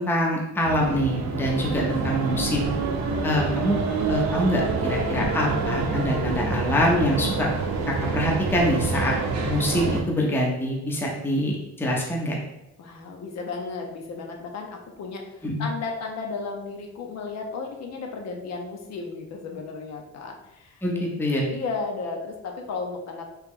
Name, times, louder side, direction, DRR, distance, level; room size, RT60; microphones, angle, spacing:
voice 1, 0.0-2.7 3.2-3.7 4.1-7.5 7.9-9.1 9.4-12.4 15.4-15.7 20.8-21.4, equal, 5° left, -2 dB, 0.5 m, -25 dB
sound 1, 0.6-10.0, right 4 dB, 65° right, 0.6 m, -27 dB
voice 2, 12.8-21.0 21.5-23.3, left 4 dB, 60° left, 2 dB, 0.6 m, -34 dB
3.0 x 2.9 x 3.6 m, 0.93 s
cardioid pair, 160°, 30 cm